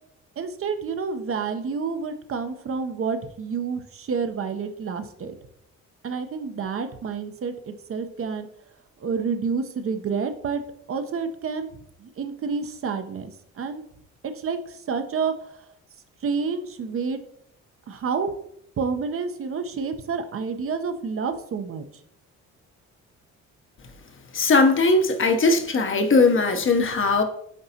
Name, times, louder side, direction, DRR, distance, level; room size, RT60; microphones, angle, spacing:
voice 1, 0.4-5.3 6.0-8.5 9.0-10.6 10.9-11.7 12.0-13.3 13.6-13.8 14.2-15.3 16.2-17.2 17.9-18.3 18.8-21.8, right 5 dB, 45° right, 8 dB, 0.7 m, -29 dB
voice 2, 24.3-27.2, left 3 dB, 40° left, 6 dB, 0.8 m, -19 dB
9.5 x 3.9 x 2.8 m, 0.72 s
cardioid pair, 90°, 30 cm